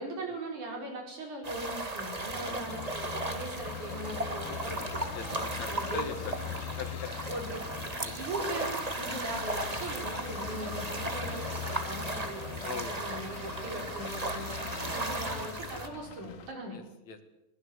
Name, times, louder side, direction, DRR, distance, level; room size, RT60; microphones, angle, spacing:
voice 1, 0.0-5.4 5.7-6.1 7.3-16.8, right 1 dB, 70° right, 1 dB, 6.6 m, -40 dB
sound 1, 1.4-15.9, right 2 dB, 25° right, 0.8 m, -36 dB
sound 2, 2.2-16.5, left 8 dB, 85° left, 3.2 m, -42 dB
voice 2, 5.1-7.1 12.6-12.9 17.1-17.2, left 5 dB, 60° left, 7 dB, 3.1 m, -40 dB
22.5 x 20.0 x 8.1 m, 0.91 s
omnidirectional pair, 3.7 m